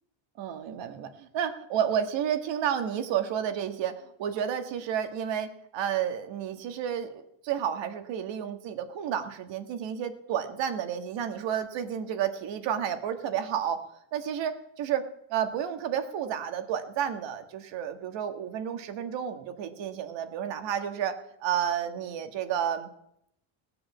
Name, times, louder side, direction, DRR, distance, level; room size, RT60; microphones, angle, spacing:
voice 1, 0.4-13.8 14.1-22.9, right 9 dB, 60° right, 8 dB, 1.7 m, -31 dB
17.5 x 7.7 x 7.2 m, 0.75 s
cardioid pair, 160°, 48 cm